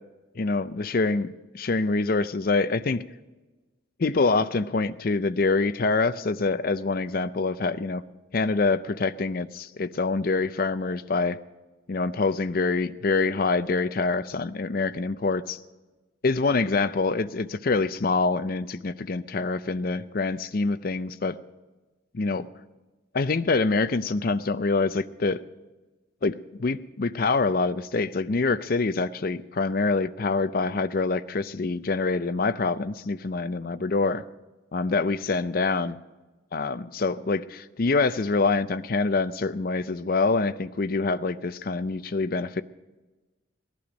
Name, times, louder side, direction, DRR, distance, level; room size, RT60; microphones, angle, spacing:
voice 1, 0.4-1.3 1.5-3.0 4.0-8.0 8.3-11.4 11.9-15.6 16.2-21.4 22.1-22.5 23.1-25.4 26.2-26.3 26.6-34.2 34.7-36.0 36.5-42.6, left 3 dB, 45° left, 13 dB, 0.5 m, -25 dB
17.0 x 11.5 x 5.2 m, 1.2 s
head